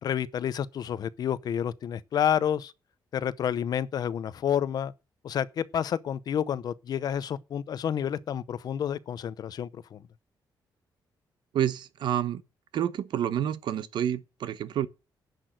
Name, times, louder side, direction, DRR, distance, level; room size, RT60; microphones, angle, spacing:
voice 1, 0.0-2.7 3.1-4.9 5.2-10.0, left 9 dB, 55° left, 0.7 m, -29 dB
voice 2, 11.5-12.4 12.7-14.9, right 10 dB, 70° right, 1.0 m, -29 dB
10.5 x 6.3 x 7.8 m
wide cardioid pair, 165°, 8 cm